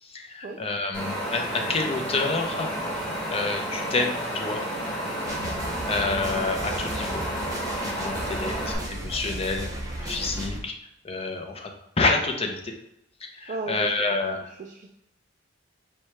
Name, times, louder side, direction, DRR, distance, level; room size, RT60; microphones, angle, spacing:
voice 1, 0.0-2.7 3.3-4.6 5.9-7.2 7.8-9.7 10.0-10.7 11.0-11.7 12.0-12.7 13.2-14.4, left 3 dB, 30° left, 3 dB, 0.6 m, -28 dB
Wind, 0.9-8.7, right 1 dB, 5° left, 1.4 m, -31 dB
sound 1, 5.2-10.6, right 1 dB, 20° right, 0.7 m, -35 dB
voice 2, 13.5-14.9, right 3 dB, 40° right, 3 dB, 0.3 m, -36 dB
4.8 x 2.2 x 4.2 m, 0.82 s
head